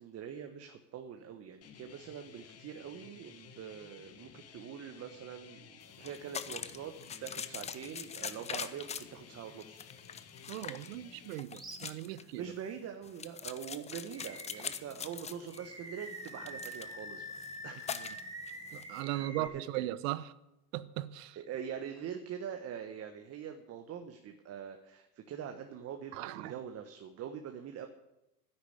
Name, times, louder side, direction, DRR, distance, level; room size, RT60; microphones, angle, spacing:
voice 1, 0.0-6.9 7.2-9.8 12.0-17.2 17.6-17.9 19.1-19.9 21.3-27.9, right 8 dB, 30° right, 1.2 m, -44 dB
sound 1, 1.6-11.4, left 7 dB, 30° left, 1.6 m, -55 dB
sound 2, 5.8-19.0, left 7 dB, 15° left, 0.6 m, -44 dB
voice 2, 10.5-12.4 18.7-20.2 20.7-21.4 26.1-26.5, right 15 dB, 55° right, 0.9 m, -38 dB
Animal, 11.5-11.9 12.3-12.5 14.1-14.8 15.5-19.5, equal, 10° right, 2.1 m, -46 dB
10.5 x 10.0 x 8.1 m
hypercardioid pair, 100°, 48 cm